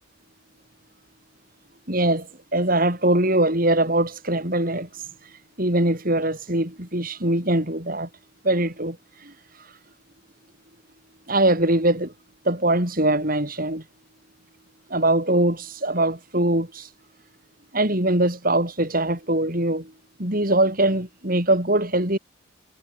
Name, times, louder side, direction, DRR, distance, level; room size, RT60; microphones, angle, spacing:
voice 1, 1.9-8.1 8.4-9.8 11.3-12.1 12.4-13.8 14.9-16.9 17.7-19.9 20.2-22.2, right 1 dB, 45° right, 6.4 m, -22 dB
head